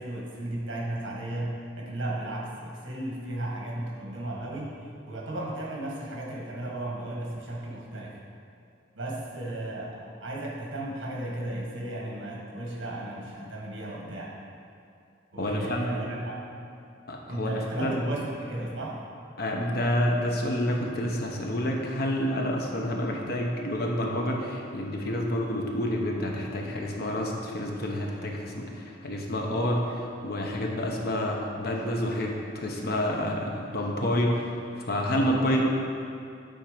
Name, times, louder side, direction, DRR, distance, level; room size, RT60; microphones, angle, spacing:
voice 1, 0.0-4.7 5.1-8.2 8.9-14.4 15.3-16.4 17.3-18.9, right 1 dB, 70° right, -3 dB, 1.5 m, -35 dB
voice 2, 15.4-16.0 17.1-18.0 19.4-34.5 34.8-35.6, equal, 50° left, 0 dB, 0.8 m, -28 dB
8.8 x 3.6 x 5.0 m, 2.5 s
head